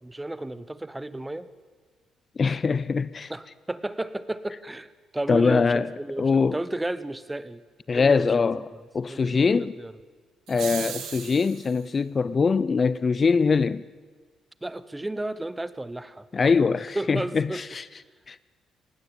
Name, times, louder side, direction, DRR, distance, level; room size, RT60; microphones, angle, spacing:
voice 1, 0.0-1.5 3.3-7.6 7.9-8.8 9.1-10.0 14.6-16.3 16.9-17.6, right 1 dB, 10° right, 1.0 m, -33 dB
voice 2, 2.4-3.3 5.3-5.9 6.2-6.6 7.9-8.6 8.9-9.7 10.5-13.8 16.3-17.8 18.3-18.4, left 5 dB, 35° left, 0.5 m, -22 dB
sound 1, 10.5-11.8, right 9 dB, 85° right, 2.3 m, -36 dB
19.0 x 16.5 x 9.0 m
cardioid pair, 90°, 0 cm